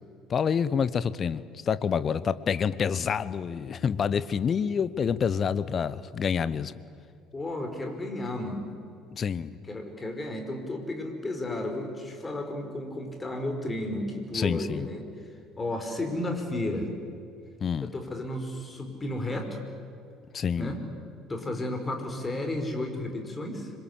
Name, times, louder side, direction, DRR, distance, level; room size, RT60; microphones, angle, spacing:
voice 1, 0.3-6.7 9.1-9.6 14.3-14.9 17.6-17.9 20.3-20.7, left 7 dB, 35° left, 16 dB, 1.0 m, -27 dB
voice 2, 7.3-8.7 9.7-15.1 15.6-16.9 17.8-19.6 20.6-20.8 21.3-23.7, left 1 dB, 20° left, 5 dB, 5.2 m, -33 dB
26.5 x 23.0 x 8.4 m, 2.5 s
figure-of-eight pair, 60°, 0 cm